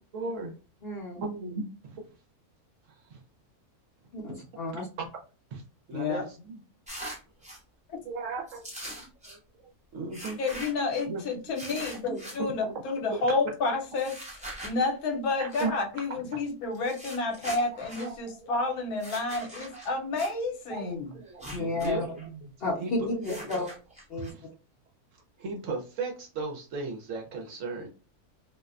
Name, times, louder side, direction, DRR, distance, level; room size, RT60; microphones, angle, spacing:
voice 1, 0.1-0.5 1.2-2.0 3.1-3.2 4.7-5.1 5.5-5.6 5.9-6.6 8.0-8.6 9.0-9.4 9.9-10.4 11.0-11.2 11.7-12.7 13.1-13.2 15.4-15.7 16.3-16.4 18.0-18.5 19.4-19.5 20.7-22.5 22.8-22.9 23.3-23.6 24.3-24.5 25.4-27.9, right 3 dB, 65° right, 2 dB, 0.9 m, -36 dB
voice 2, 0.8-1.2 4.1-4.9 21.5-22.1 22.6-23.1 23.5-23.7 24.1-24.3, left 2 dB, 55° left, -3 dB, 0.6 m, -31 dB
voice 3, 5.9-6.2 10.4-14.1 14.6-21.2 22.8-23.3, left 3 dB, 80° left, 3 dB, 1.1 m, -30 dB
sound 1, 6.9-7.6 8.5-9.4 10.1-11.0 11.5-12.4 14.0-14.7 15.5-15.7 16.7-18.1 18.9-20.3 21.3-21.9 22.2-22.3 23.2-24.3, right 1 dB, 10° right, 0.3 m, -42 dB
2.6 x 2.1 x 2.3 m, 0.33 s
omnidirectional pair, 1.6 m